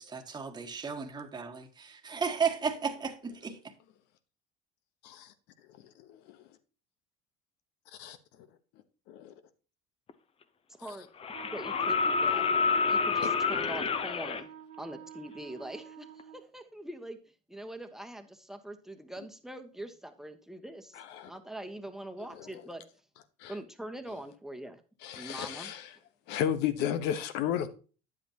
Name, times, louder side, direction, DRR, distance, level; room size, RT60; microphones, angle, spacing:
voice 1, 0.0-3.6, right 6 dB, 25° right, 1.4 m, -34 dB
voice 2, 6.0-6.4 8.0-8.2 9.1-9.3 13.2-13.3 20.9-21.3 22.3-22.4 23.4-23.5 25.0-25.9 26.3-27.7, left 10 dB, 75° left, 1.1 m, -33 dB
sound 1, 10.1-10.2 11.2-14.4 16.2-16.3, left 5 dB, 35° left, 0.9 m, -28 dB
voice 3, 10.7-11.1 11.5-12.5 12.9-14.5 14.8-17.2 17.5-22.8 23.5-24.8 25.1-25.7, right 1 dB, ahead, 1.2 m, -43 dB
Wind instrument woodwind instrument, 11.3-16.5, right 10 dB, 75° right, 0.7 m, -49 dB
9.6 x 7.9 x 2.9 m
supercardioid pair, 95°, 18 cm